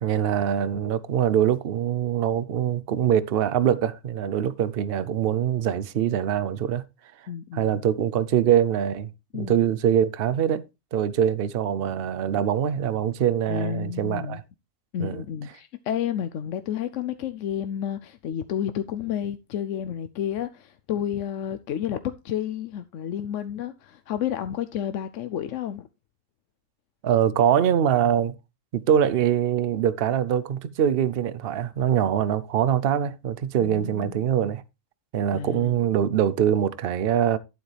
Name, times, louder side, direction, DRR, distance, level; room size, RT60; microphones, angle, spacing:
voice 1, 0.0-6.8 7.5-10.6 10.9-14.4 15.0-15.2 27.0-28.3 28.7-34.6 35.1-37.4, right 9 dB, 55° right, 0.8 m, -23 dB
voice 2, 7.3-7.8 9.3-9.6 13.5-14.4 14.9-22.0 22.2-25.9 33.6-34.3 35.3-35.9, left 9 dB, 75° left, 1.0 m, -31 dB
11.5 x 7.9 x 3.3 m
omnidirectional pair, 1.3 m